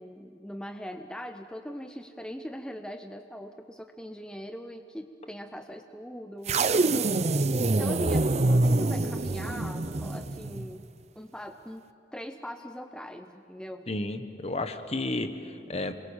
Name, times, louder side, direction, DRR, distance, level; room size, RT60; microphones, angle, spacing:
voice 1, 0.0-7.1 7.6-10.8 11.2-11.8 12.1-13.9, equal, 5° left, 7 dB, 0.6 m, -41 dB
sound 1, 6.5-10.7, right 2 dB, 40° right, 0.6 m, -25 dB
voice 2, 13.9-15.9, left 2 dB, 35° left, 9 dB, 1.2 m, -32 dB
27.0 x 22.0 x 7.3 m, 2.6 s
head